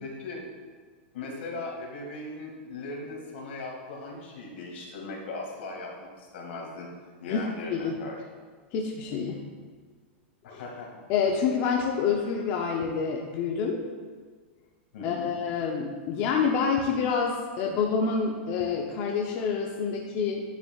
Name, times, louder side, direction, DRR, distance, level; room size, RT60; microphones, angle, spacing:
voice 1, 0.0-0.4 1.1-6.9 7.2-8.2 10.6-10.9 14.9-15.3, left 3 dB, 75° left, -1 dB, 2.0 m, -38 dB
voice 2, 8.7-9.4 10.5-10.6 11.1-13.8 15.0-20.4, left 6 dB, 35° left, 0 dB, 0.6 m, -27 dB
9.8 x 6.7 x 2.4 m, 1.5 s
supercardioid pair, 155°, 6 cm